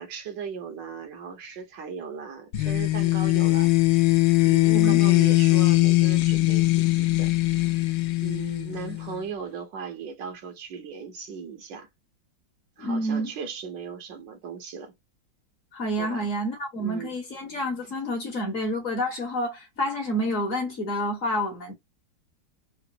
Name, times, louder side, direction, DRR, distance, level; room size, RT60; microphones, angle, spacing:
voice 1, 0.0-4.1 4.4-7.9 8.2-11.9 12.8-14.9 16.0-16.3 16.8-17.1, right 6 dB, 70° right, 1.5 m, -38 dB
sound 1, 2.5-9.2, left 19 dB, 85° left, 1.3 m, -21 dB
voice 2, 12.8-13.3 15.7-21.7, equal, 50° left, 1.3 m, -29 dB
3.9 x 2.1 x 2.7 m
omnidirectional pair, 2.1 m